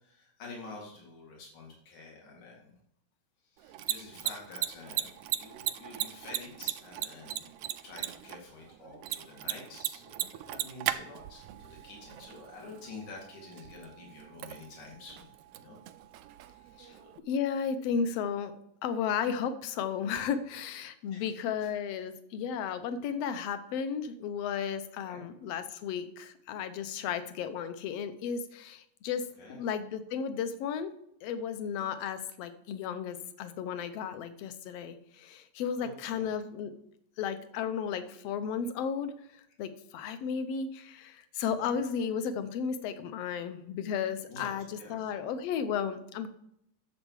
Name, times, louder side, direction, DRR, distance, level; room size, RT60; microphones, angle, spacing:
voice 1, 0.0-2.7 3.5-7.5 7.8-15.8 16.8-17.1 21.1-21.3 21.6-21.7 25.0-25.2 29.4-29.6 35.8-36.3 41.6-41.8 44.3-45.2, left 3 dB, 85° left, -2 dB, 3.9 m, -48 dB
Mechanisms, 3.6-17.2, right 13 dB, 90° right, 1.4 m, -39 dB
voice 2, 17.3-18.5 18.8-29.2 29.5-30.9 31.2-36.7 37.2-46.3, left 7 dB, 70° left, 10 dB, 1.7 m, -34 dB
10.5 x 7.3 x 4.7 m, 0.74 s
omnidirectional pair, 3.3 m